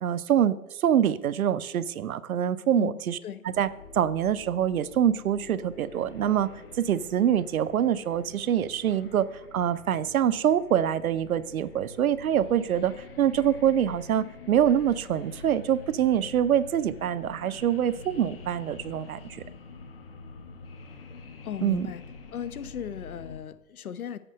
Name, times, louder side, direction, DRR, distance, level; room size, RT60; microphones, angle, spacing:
voice 1, 0.0-3.2 3.4-3.7 3.9-6.5 6.8-9.3 9.5-19.4 21.6-21.9, right 9 dB, 70° right, 16 dB, 0.6 m, -25 dB
voice 2, 2.8-3.4 21.4-22.0 22.3-24.2, left 9 dB, 75° left, 15 dB, 0.7 m, -37 dB
sound 1, 3.5-23.4, left 4 dB, 40° left, 0.8 m, -46 dB
7.9 x 4.4 x 6.3 m, 0.97 s
hypercardioid pair, 155°, 44 cm